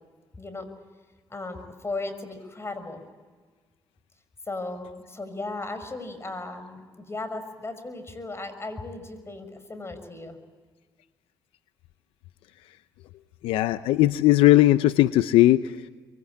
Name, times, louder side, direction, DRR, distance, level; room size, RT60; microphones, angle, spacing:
voice 1, 0.4-0.7 1.3-3.0 4.5-10.4, left 2 dB, 30° left, 10 dB, 6.0 m, -36 dB
voice 2, 13.4-15.9, left 15 dB, 85° left, 13 dB, 0.7 m, -19 dB
25.0 x 23.5 x 8.6 m, 1.5 s
supercardioid pair, 60°, 9 cm